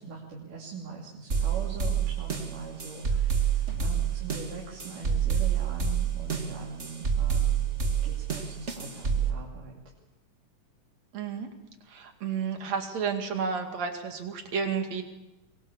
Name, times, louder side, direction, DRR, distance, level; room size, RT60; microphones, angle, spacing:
voice 1, 0.0-7.7 8.0-9.7, right 4 dB, 85° right, -3 dB, 4.6 m, -41 dB
sound 1, 1.3-9.3, right 7 dB, 25° right, 1.7 m, -28 dB
voice 2, 11.1-11.5 11.9-15.0, right 6 dB, 60° right, 4 dB, 3.4 m, -31 dB
23.5 x 22.5 x 7.1 m, 0.95 s
omnidirectional pair, 3.6 m